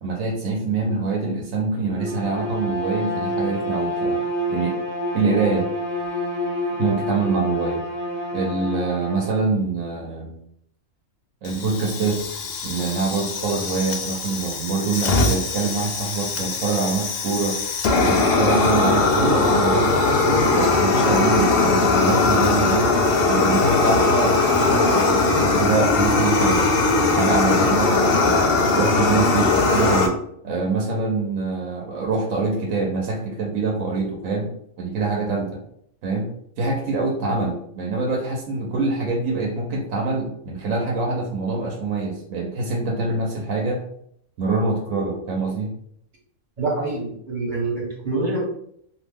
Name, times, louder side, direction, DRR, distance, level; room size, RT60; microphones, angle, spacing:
voice 1, 0.0-4.2 4.5-4.8 5.1-5.7 6.8-7.8 8.3-10.4 11.4-12.2 12.6-17.6 17.9-22.9 23.3-26.6 27.2-28.4 28.7-30.2 30.4-35.6 36.0-36.3 36.6-43.8 44.4-45.7, right 3 dB, 75° right, 0 dB, 1.0 m, -25 dB
Bowed string instrument, 1.9-9.5, equal, 15° right, 0.5 m, -27 dB
Fire, 11.4-30.1, left 3 dB, 65° left, 0.6 m, -20 dB
voice 2, 46.6-48.4, right 2 dB, 40° right, -4 dB, 0.9 m, -26 dB
2.6 x 2.1 x 3.3 m, 0.69 s
omnidirectional pair, 1.4 m